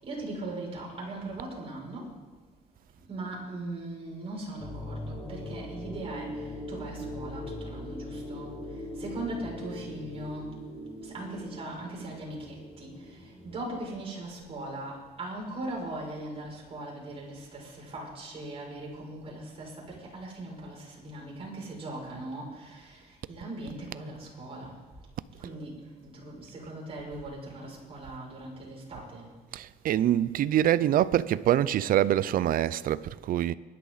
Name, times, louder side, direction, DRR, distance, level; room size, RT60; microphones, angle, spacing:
voice 1, 0.0-2.1 3.1-6.3 6.7-8.5 9.0-10.5 11.0-13.1 13.4-19.7 20.0-23.0 23.3-24.7 25.4-25.7 26.0-29.3, right 2 dB, 35° right, 6.4 m, -39 dB
sound 1, 4.6-13.7, left 1 dB, 25° left, 5.5 m, -40 dB
voice 2, 29.5-33.5, right 11 dB, 60° right, 0.6 m, -25 dB
24.0 x 11.5 x 4.1 m
cardioid pair, 110°, 17 cm